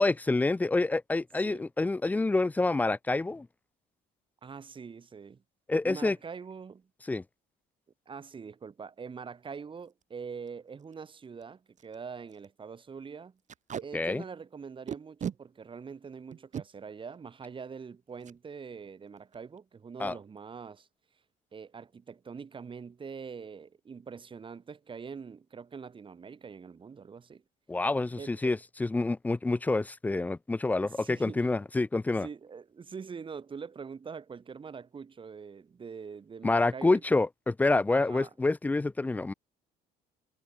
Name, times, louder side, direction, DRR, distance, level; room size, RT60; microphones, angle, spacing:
voice 1, 0.0-3.5 5.7-6.2 7.1-7.2 13.9-14.2 20.0-20.1 27.7-32.3 36.4-39.3, left 2 dB, 10° left, 0.3 m, -27 dB
voice 2, 4.4-5.4 5.8-6.9 8.1-13.4 13.8-20.9 21.5-27.4 28.2-28.6 30.8-31.5 32.2-37.0 37.9-38.3, right 6 dB, 30° right, 1.9 m, -44 dB
Packing tape duct tape, 9.8-10.0 10.5-10.6 10.8-10.9 11.4-11.5 11.8-12.0 12.3-12.5 13.5-13.9 14.9-15.4 16.3-16.7 18.2-18.4 18.7-18.9 19.2-19.6, right 8 dB, 45° right, 2.9 m, -37 dB
cardioid pair, 110°, 17 cm